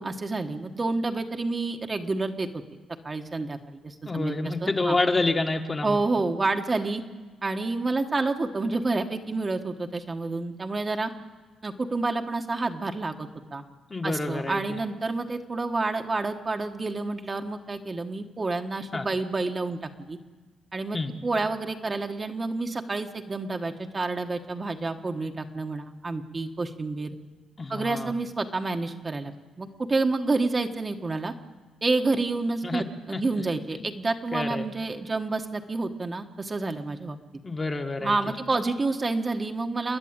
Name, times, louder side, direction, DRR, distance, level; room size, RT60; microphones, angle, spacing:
voice 1, 0.0-2.6 3.0-5.0 5.8-7.0 7.4-11.1 11.6-13.6 14.0-20.2 20.7-27.2 27.7-31.3 31.8-37.2 38.0-40.0, right 3 dB, 25° right, 4 dB, 1.4 m, -29 dB
voice 2, 4.0-6.0 13.9-14.6 18.9-19.0 20.9-21.1 27.6-28.1 32.6-32.8 33.1-33.4 33.7-33.8 34.3-34.6 37.4-38.2, left 3 dB, 25° left, 4 dB, 1.7 m, -28 dB
29.5 x 10.5 x 8.9 m, 1.4 s
cardioid pair, 90°, 0 cm